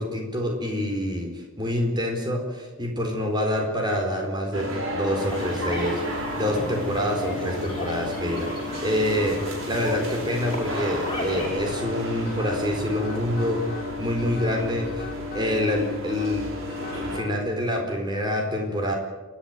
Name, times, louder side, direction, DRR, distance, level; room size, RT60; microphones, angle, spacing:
voice 1, 0.0-13.6 14.0-16.4 16.9-18.9, left 1 dB, 20° right, 2 dB, 4.3 m, -27 dB
sound 1, 4.5-17.2, left 1 dB, 65° right, 5.2 m, -33 dB
sound 2, 5.2-11.5, equal, 25° left, 5.2 m, -35 dB
Wind instrument woodwind instrument, 11.6-17.3, left 3 dB, 40° left, 1.9 m, -41 dB
29.0 x 11.5 x 9.4 m, 1.3 s
head